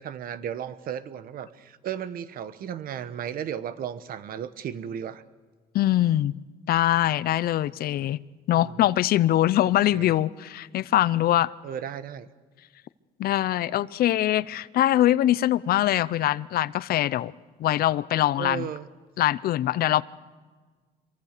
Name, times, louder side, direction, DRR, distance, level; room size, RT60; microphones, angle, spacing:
voice 1, 0.0-5.2 8.5-8.9 9.6-10.2 11.6-12.3 18.4-18.9, right 8 dB, 60° right, 14 dB, 1.2 m, -35 dB
voice 2, 5.7-6.3 6.7-8.2 8.5-11.5 13.2-17.3 17.6-18.7 19.2-20.0, left 13 dB, 65° left, 19 dB, 0.7 m, -23 dB
25.5 x 23.0 x 6.7 m, 1.4 s
cardioid pair, 110°, 17 cm